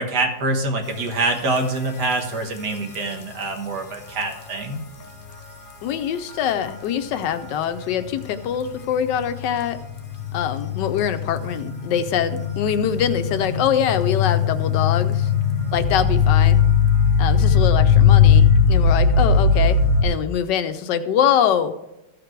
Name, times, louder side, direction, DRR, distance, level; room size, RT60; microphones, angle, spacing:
voice 1, 0.0-4.8, right 2 dB, 60° right, 4 dB, 1.8 m, -25 dB
sound 1, 1.3-1.4 2.0-2.1 3.0-3.1 6.3-6.6 8.2-8.3 9.0-20.0, left 6 dB, 45° left, 0.7 m, -18 dB
voice 2, 5.8-9.8 10.3-15.3 15.7-16.6 17.2-19.8 20.0-21.7, left 8 dB, 75° left, 10 dB, 1.2 m, -23 dB
14.5 x 5.1 x 4.5 m, 0.92 s
omnidirectional pair, 2.0 m